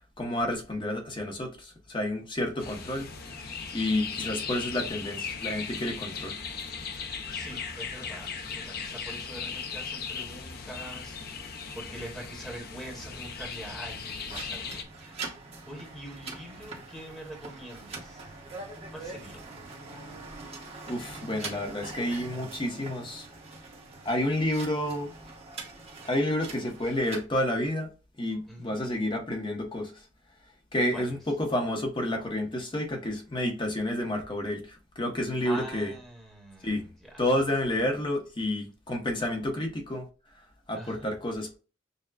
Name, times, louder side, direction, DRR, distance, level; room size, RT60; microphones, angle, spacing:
voice 1, 0.2-3.1 3.4-6.3 20.9-23.3 24.0-25.1 26.0-27.9 28.2-29.9 30.7-35.9 36.6-36.8 37.2-40.1 40.7-41.5, left 1 dB, 25° left, 0.9 m, -30 dB
sound 1, 2.6-14.8, left 5 dB, 50° left, 0.7 m, -37 dB
voice 2, 7.3-15.4 15.7-18.3 18.9-19.5 28.5-28.8 30.9-31.1 35.4-37.2 40.7-41.1, right 1 dB, ahead, 1.1 m, -44 dB
sound 2, 14.3-27.2, right 3 dB, 35° right, 1.2 m, -43 dB
6.5 x 2.2 x 2.4 m
head